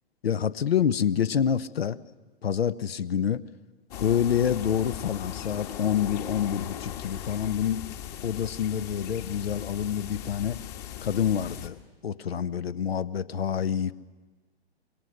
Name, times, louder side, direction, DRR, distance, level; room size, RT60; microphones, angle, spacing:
voice 1, 0.2-2.0 2.4-3.4 4.0-8.0 8.2-10.6 11.0-11.8 12.0-13.9, left 8 dB, 70° left, 17 dB, 0.9 m, -27 dB
sound 1, 3.9-11.7, left 10 dB, 40° left, 1.8 m, -38 dB
26.5 x 23.0 x 6.5 m, 1.3 s
figure-of-eight pair, 115°, 32 cm